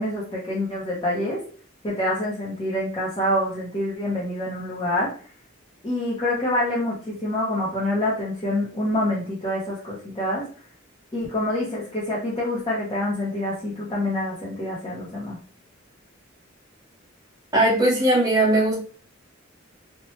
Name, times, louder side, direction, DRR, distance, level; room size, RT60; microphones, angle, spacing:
voice 1, 0.0-1.4 1.8-5.1 5.8-10.4 11.1-15.4, left 1 dB, 25° left, -7 dB, 0.7 m, -26 dB
voice 2, 17.5-18.8, right 1 dB, 20° right, -4 dB, 1.2 m, -19 dB
2.8 x 2.2 x 3.1 m, 0.43 s
head